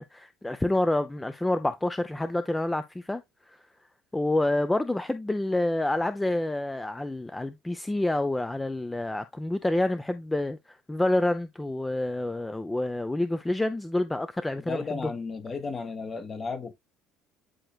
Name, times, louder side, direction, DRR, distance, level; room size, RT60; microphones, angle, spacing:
voice 1, 0.0-3.2 4.1-15.0, left 1 dB, 10° left, 0.6 m, -28 dB
voice 2, 14.6-16.7, left 4 dB, 35° left, 1.6 m, -34 dB
9.9 x 4.5 x 2.4 m
supercardioid pair, 90°, 0 cm